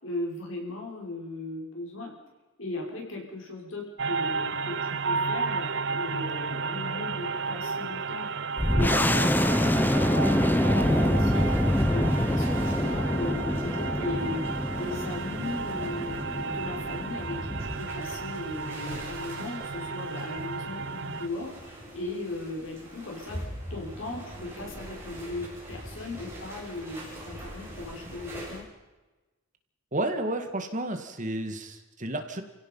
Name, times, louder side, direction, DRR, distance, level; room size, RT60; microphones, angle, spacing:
voice 1, 0.0-2.1 2.6-8.3 8.7-11.5 11.9-14.4 14.7-23.4 23.7-28.7, left 2 dB, 70° left, 0 dB, 6.2 m, -37 dB
sound 1, 4.0-21.3, right 4 dB, 60° right, 0.7 m, -33 dB
sound 2, 8.6-17.8, left 1 dB, 10° left, 1.0 m, -26 dB
sound 3, 10.7-28.6, equal, 10° right, 7.8 m, -42 dB
voice 2, 29.9-32.4, right 1 dB, 40° right, 6 dB, 2.1 m, -31 dB
30.0 x 16.5 x 5.7 m, 1.1 s
head